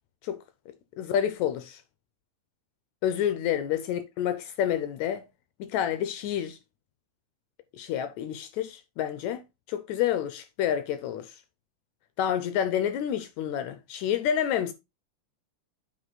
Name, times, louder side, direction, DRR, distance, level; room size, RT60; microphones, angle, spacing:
voice 1, 1.0-1.8 3.0-5.2 5.6-6.6 7.7-11.4 12.2-14.7, left 10 dB, 75° left, 1.8 m, -29 dB
9.5 x 3.4 x 3.9 m
omnidirectional pair, 3.6 m